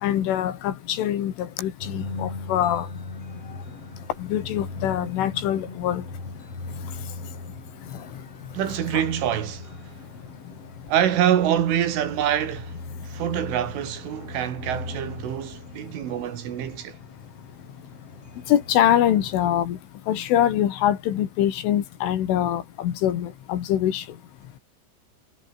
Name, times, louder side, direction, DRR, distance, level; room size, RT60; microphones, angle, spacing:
voice 1, 0.0-2.9 4.2-6.0 8.9-9.0 18.5-19.8 20.1-24.0, left 11 dB, 80° left, 4.8 m, -24 dB
sound 1, 1.8-19.5, left 3 dB, 30° left, 8.8 m, -39 dB
voice 2, 8.5-9.8 10.9-12.8 13.0-17.0, right 10 dB, 75° right, 5.1 m, -25 dB
omnidirectional pair, 5.6 m